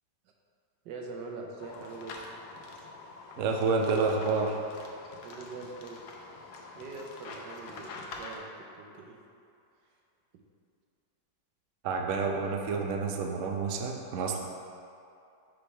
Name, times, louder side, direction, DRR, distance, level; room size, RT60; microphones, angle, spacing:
voice 1, 0.8-2.3 5.2-6.1 6.7-9.2 10.3-10.4, right 3 dB, 90° right, 0 dB, 1.4 m, -43 dB
sound 1, 1.6-8.4, left 3 dB, 70° left, 1.1 m, -46 dB
voice 2, 3.4-4.5 11.8-14.4, right 4 dB, 70° right, 2 dB, 0.7 m, -29 dB
5.3 x 3.4 x 5.4 m, 2.6 s
omnidirectional pair, 1.9 m